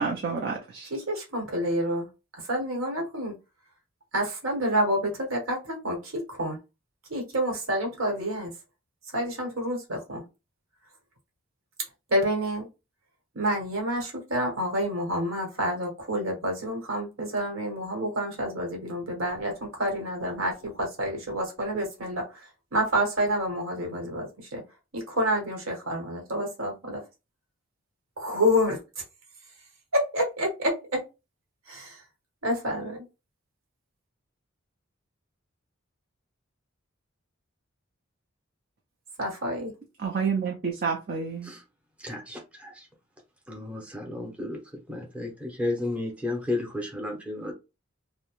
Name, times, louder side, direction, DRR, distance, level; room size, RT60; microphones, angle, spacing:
voice 1, 0.0-0.9 40.0-41.5, right 5 dB, 45° right, 0.5 m, -29 dB
voice 2, 0.9-2.1 2.4-3.3 4.1-6.6 7.1-8.5 9.1-10.2 12.1-12.7 13.3-24.6 24.9-27.0 28.2-29.0 29.9-31.0 31.7-32.0 32.4-33.1 39.2-39.7, equal, 75° right, 1.2 m, -28 dB
voice 3, 42.0-42.9 43.5-44.6 44.9-47.5, left 2 dB, 5° right, 0.7 m, -33 dB
2.8 x 2.1 x 3.0 m
head